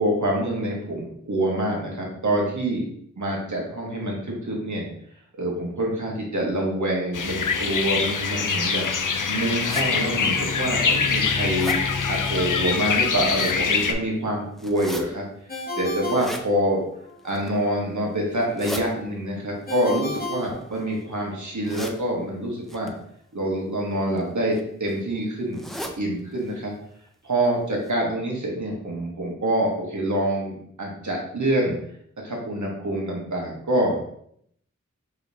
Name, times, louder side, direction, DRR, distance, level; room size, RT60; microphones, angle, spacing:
voice 1, 0.0-2.9 3.2-4.9 5.4-8.9 9.3-11.8 12.1-15.2 15.8-16.8 17.2-22.9 23.3-25.6 26.0-26.7 27.2-31.8 32.2-34.0, right 1 dB, 70° right, -2 dB, 1.3 m, -26 dB
sound 1, 7.1-13.9, left 5 dB, 85° left, 0.5 m, -24 dB
sound 2, 9.6-9.9 10.5-10.6 11.0-11.8 12.9-13.6 14.6-15.0 16.0-16.5 17.2-17.6 18.3-18.8 20.0-21.0 21.6-22.0 22.7-22.9 23.9-24.2 24.5-24.6 24.9-25.0 25.5-26.0 26.4-26.5 26.8-26.9 27.4-27.5 27.8-27.9, equal, ahead, 0.6 m, -36 dB
Ringtone, 15.5-17.2 19.7-21.3, left 2 dB, 30° left, 0.9 m, -34 dB
5.0 x 3.9 x 2.7 m, 0.68 s
wide cardioid pair, 50°, 30 cm